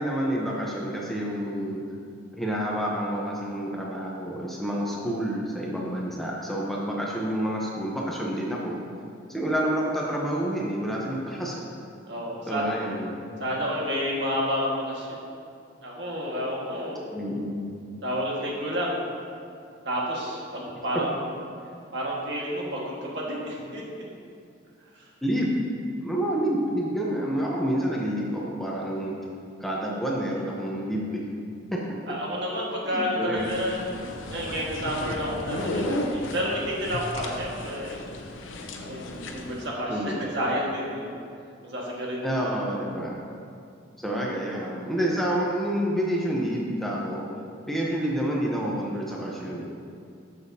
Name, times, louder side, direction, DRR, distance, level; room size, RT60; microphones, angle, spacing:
voice 1, 0.0-1.8 2.4-8.8 9.3-11.6 12.5-13.2 17.1-17.6 25.2-25.6 26.0-29.1 29.6-31.2 32.8-33.5 39.9-40.4 42.2-43.1 44.0-47.3 47.7-49.6, equal, ahead, -4 dB, 0.8 m, -28 dB
voice 2, 12.1-12.7 13.4-15.2 15.8-17.0 18.0-19.1 19.8-21.2 21.9-24.0 32.1-33.8 34.3-38.0 38.9-41.0 41.6-42.3, equal, 60° right, -4 dB, 1.7 m, -30 dB
sound 1, 33.4-39.7, left 1 dB, 80° left, 0.7 m, -34 dB
10.5 x 7.1 x 2.8 m, 2.4 s
head